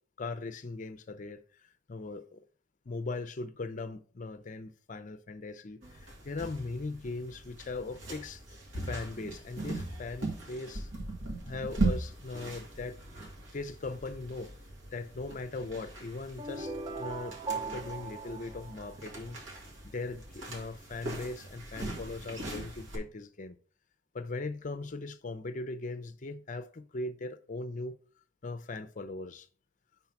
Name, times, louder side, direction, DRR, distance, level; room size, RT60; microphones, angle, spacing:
voice 1, 0.2-1.4 1.9-2.4 2.9-8.4 8.8-10.9 11.4-13.0 13.5-14.5 14.9-19.4 19.8-23.6 24.1-27.9 28.4-29.5, left 3 dB, 40° left, 0.6 m, -39 dB
sound 1, 5.8-23.0, right 2 dB, 80° right, 2.1 m, -39 dB
sound 2, 16.4-19.4, right 4 dB, 20° right, 0.5 m, -39 dB
5.5 x 4.1 x 5.8 m
head